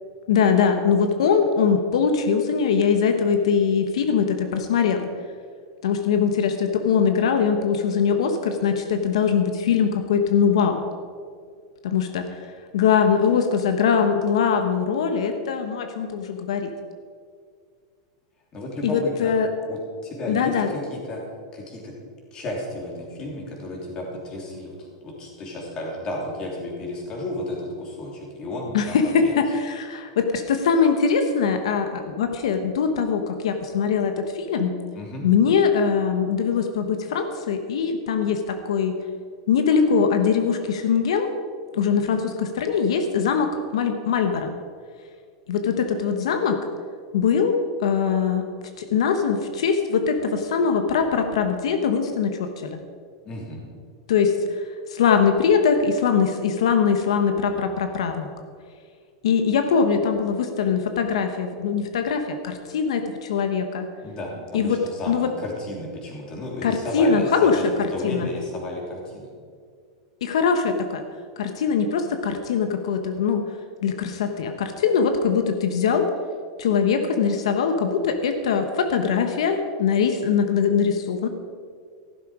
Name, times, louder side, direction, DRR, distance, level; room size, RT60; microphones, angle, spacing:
voice 1, 0.3-5.1 5.8-10.8 11.8-12.4 12.7-16.7 18.8-19.5 20.3-20.7 28.7-34.7 35.2-38.9 39.5-41.3 41.7-44.5 45.5-46.6 47.1-48.4 48.8-52.8 54.1-54.6 54.9-58.3 59.2-63.9 64.5-64.8 65.1-65.3 66.6-68.3 70.2-71.0 71.4-73.4 73.8-76.1 76.6-81.3, left 6 dB, 85° left, 6 dB, 1.3 m, -22 dB
voice 2, 18.5-19.3 19.7-21.2 21.5-21.9 22.3-24.8 25.0-29.4 34.9-35.3 53.2-53.7 64.0-69.3, left 1 dB, 25° left, -1 dB, 3.2 m, -33 dB
14.5 x 12.0 x 5.0 m, 2.1 s
supercardioid pair, 165°, 3 cm